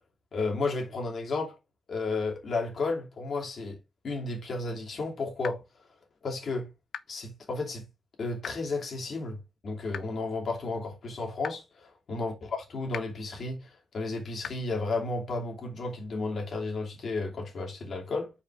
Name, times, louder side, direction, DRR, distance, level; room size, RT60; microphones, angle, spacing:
voice 1, 0.3-1.5 1.9-3.8 4.0-5.6 6.2-6.7 7.1-7.9 8.2-9.4 9.6-18.3, left 3 dB, 55° left, 2.7 m, -33 dB
sound 1, 5.4-5.5 6.9-7.0 8.4-8.5 9.9-10.0 11.4-11.5 12.9-13.0 14.4-14.5, left 8 dB, 80° left, 0.5 m, -36 dB
5.4 x 4.7 x 4.7 m
wide cardioid pair, 120°, 0 cm